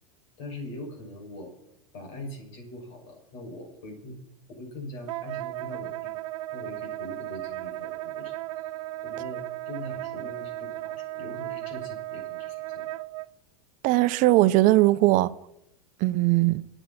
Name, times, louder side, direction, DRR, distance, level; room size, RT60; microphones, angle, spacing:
voice 1, 0.4-1.5 1.9-4.2 4.5-6.2 6.5-8.4 9.0-12.9, left 1 dB, 65° left, 6.7 m, -42 dB
Wind instrument woodwind instrument, 5.1-13.3, right 16 dB, 65° right, 0.5 m, -35 dB
voice 2, 13.8-15.3 16.0-16.6, right 17 dB, 50° right, 0.8 m, -20 dB
23.0 x 9.2 x 4.4 m
hypercardioid pair, 100°, 18 cm